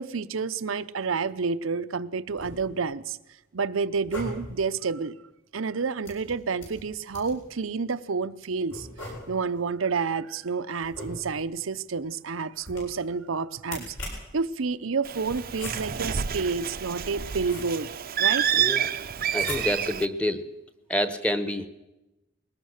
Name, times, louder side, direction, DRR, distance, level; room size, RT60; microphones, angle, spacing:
voice 1, 0.0-3.2 3.5-5.1 5.5-17.9 18.2-18.5, right 5 dB, 80° right, 13 dB, 0.7 m, -29 dB
sound 1, 2.2-2.9 3.9-4.7 6.0-7.5 8.7-9.6 10.8-11.6 12.6-13.1 13.6-14.4 15.3-16.1 16.9-18.0 19.3-20.0, left 1 dB, 70° left, 7.8 m, -40 dB
Bird, 15.0-20.0, right 9 dB, 50° right, 0.6 m, -28 dB
voice 2, 18.6-18.9 19.3-20.4 20.9-21.7, left 1 dB, 5° left, 11 dB, 1.1 m, -27 dB
21.5 x 19.0 x 6.6 m, 0.97 s
head